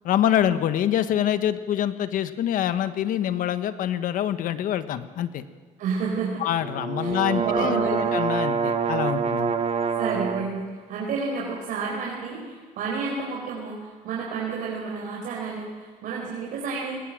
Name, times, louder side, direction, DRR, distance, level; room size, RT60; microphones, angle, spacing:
voice 1, 0.0-5.4 6.4-9.5, left 10 dB, 75° left, 11 dB, 1.3 m, -25 dB
voice 2, 5.8-6.4 7.0-8.1 10.0-17.0, right 5 dB, 75° right, -2 dB, 4.5 m, -30 dB
sound 1, 6.6-10.5, right 6 dB, 50° right, 2.1 m, -26 dB
21.5 x 20.5 x 7.6 m, 1.5 s
cardioid pair, 110°, 14 cm